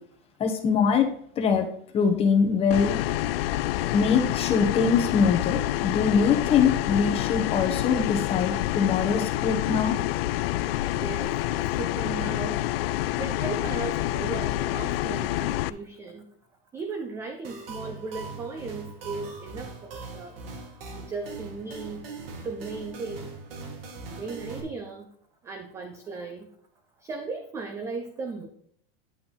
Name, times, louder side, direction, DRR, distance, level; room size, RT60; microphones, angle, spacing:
voice 1, 0.4-1.1 1.4-1.7 1.9-3.0 3.9-10.0, left 6 dB, 20° left, 5 dB, 1.2 m, -23 dB
sound 1, 2.7-15.7, left 14 dB, 85° left, 0.5 m, -27 dB
voice 2, 10.9-12.6 13.2-16.2 16.7-20.4 20.9-22.0 22.4-23.3 24.1-25.1 25.4-26.5 27.0-28.5, right 4 dB, 10° right, 6 dB, 0.4 m, -36 dB
sound 2, 17.4-24.6, right 3 dB, 75° right, 2.5 m, -40 dB
10.0 x 5.7 x 4.0 m, 0.64 s
supercardioid pair, 165°, 29 cm